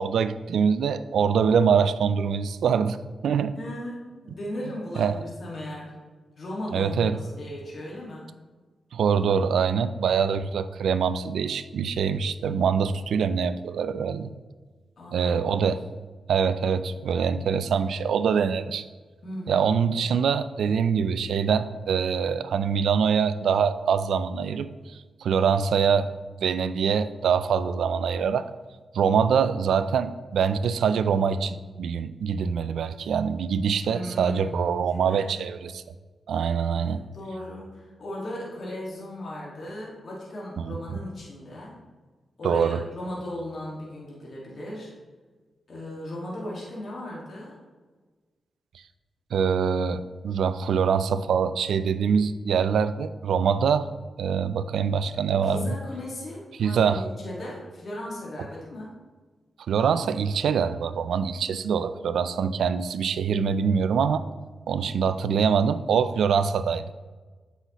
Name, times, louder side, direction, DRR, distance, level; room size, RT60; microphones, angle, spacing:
voice 1, 0.0-3.0 3.2-3.6 5.0-5.2 6.7-7.2 8.9-14.3 15.1-15.8 16.3-18.9 19.5-26.1 26.4-28.5 28.9-35.8 36.3-37.0 40.6-41.0 42.4-42.8 49.3-53.9 54.2-55.7 56.6-57.0 59.7-64.2 64.7-66.9, right 6 dB, 90° right, 13 dB, 0.3 m, -24 dB
voice 2, 3.5-5.9 6.4-8.3 15.0-15.6 19.2-19.7 33.8-35.4 36.7-41.8 42.4-44.9 45.7-47.6 55.3-58.9, left 1 dB, 60° left, -4 dB, 1.8 m, -37 dB
8.1 x 5.6 x 3.0 m, 1.4 s
cardioid pair, 65°, 0 cm